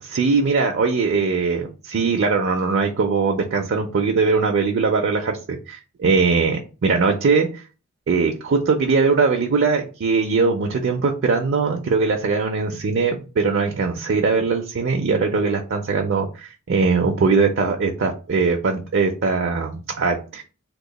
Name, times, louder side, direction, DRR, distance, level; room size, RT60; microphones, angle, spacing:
voice 1, 0.0-7.6 8.1-20.4, right 4 dB, 60° right, 3 dB, 0.5 m, -21 dB
2.9 x 2.1 x 3.9 m, 0.33 s
head